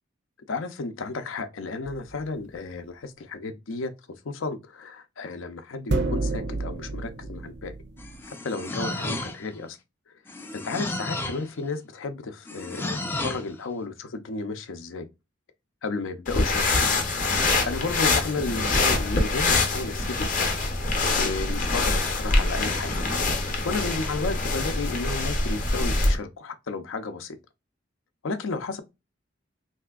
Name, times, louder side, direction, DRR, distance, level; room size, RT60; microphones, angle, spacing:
voice 1, 0.5-3.9 4.2-7.7 8.3-9.8 10.5-15.1 15.8-16.9 17.4-20.6 20.9-22.9 23.6-27.4 28.2-28.8, left 3 dB, 80° left, 0.5 m, -33 dB
sound 1, 1.9-2.2 5.9-8.2, right 3 dB, 55° right, 0.5 m, -30 dB
sound 2, 8.0-9.6 10.3-11.5 12.5-13.5, left 2 dB, 10° left, 0.3 m, -32 dB
sound 3, 16.3-26.2, left 3 dB, 40° left, 0.6 m, -24 dB
3.3 x 2.7 x 2.2 m
head